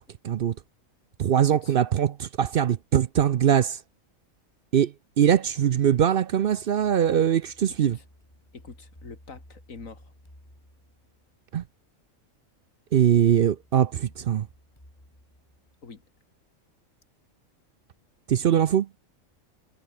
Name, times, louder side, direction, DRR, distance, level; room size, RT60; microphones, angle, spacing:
voice 1, 0.2-0.6 1.2-3.8 4.7-8.0 11.5-11.6 12.9-14.5 18.3-18.9, right 9 dB, 60° right, 0.6 m, -22 dB
voice 2, 1.4-1.7 7.9-8.0 8.5-10.1 15.8-16.0, left 4 dB, 75° left, 2.8 m, -45 dB
sound 1, 6.4-11.4 13.2-16.2, left 1 dB, 20° left, 7.0 m, -55 dB
omnidirectional pair, 1.4 m